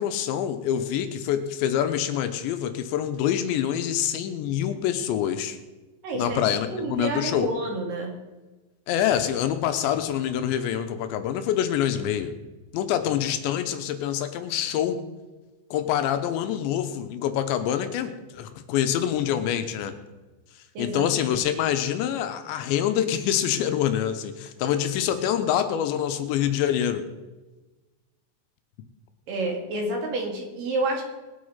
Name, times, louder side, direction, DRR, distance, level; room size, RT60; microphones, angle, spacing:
voice 1, 0.0-5.6 6.1-7.5 8.9-12.3 12.7-15.0 15.7-19.9 20.8-27.0, left 10 dB, 80° left, 9 dB, 3.2 m, -26 dB
voice 2, 6.0-6.4 6.7-8.2 20.7-21.0 29.3-31.0, right 2 dB, 55° right, 1 dB, 3.4 m, -29 dB
20.0 x 8.3 x 5.7 m, 1.2 s
omnidirectional pair, 5.3 m